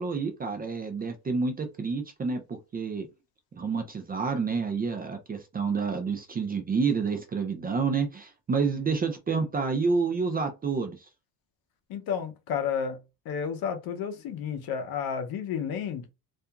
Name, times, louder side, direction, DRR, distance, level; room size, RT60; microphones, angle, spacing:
voice 1, 0.0-3.1 3.5-11.0, right 5 dB, 25° right, 0.4 m, -29 dB
voice 2, 11.9-13.0 13.3-16.1, left 7 dB, 65° left, 0.7 m, -31 dB
2.7 x 2.5 x 2.3 m
cardioid pair, 125°, 40 cm